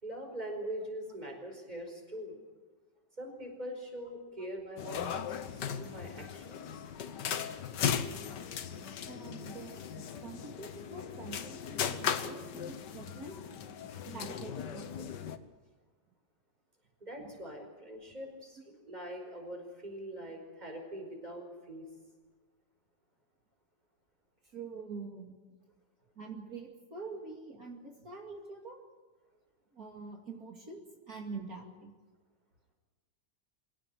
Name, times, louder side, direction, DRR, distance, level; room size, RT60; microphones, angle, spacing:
voice 1, 0.0-2.3 3.2-5.1 5.5-6.7 17.0-21.9, equal, 25° right, 3 dB, 5.1 m, -43 dB
sound 1, 4.8-15.4, left 8 dB, 75° left, 1.7 m, -37 dB
voice 2, 9.0-13.4 14.1-15.1 17.2-17.6 24.5-25.4 26.2-28.8 29.7-32.0, right 4 dB, 55° right, 1 dB, 2.8 m, -45 dB
23.5 x 17.5 x 9.1 m, 1.4 s
omnidirectional pair, 1.9 m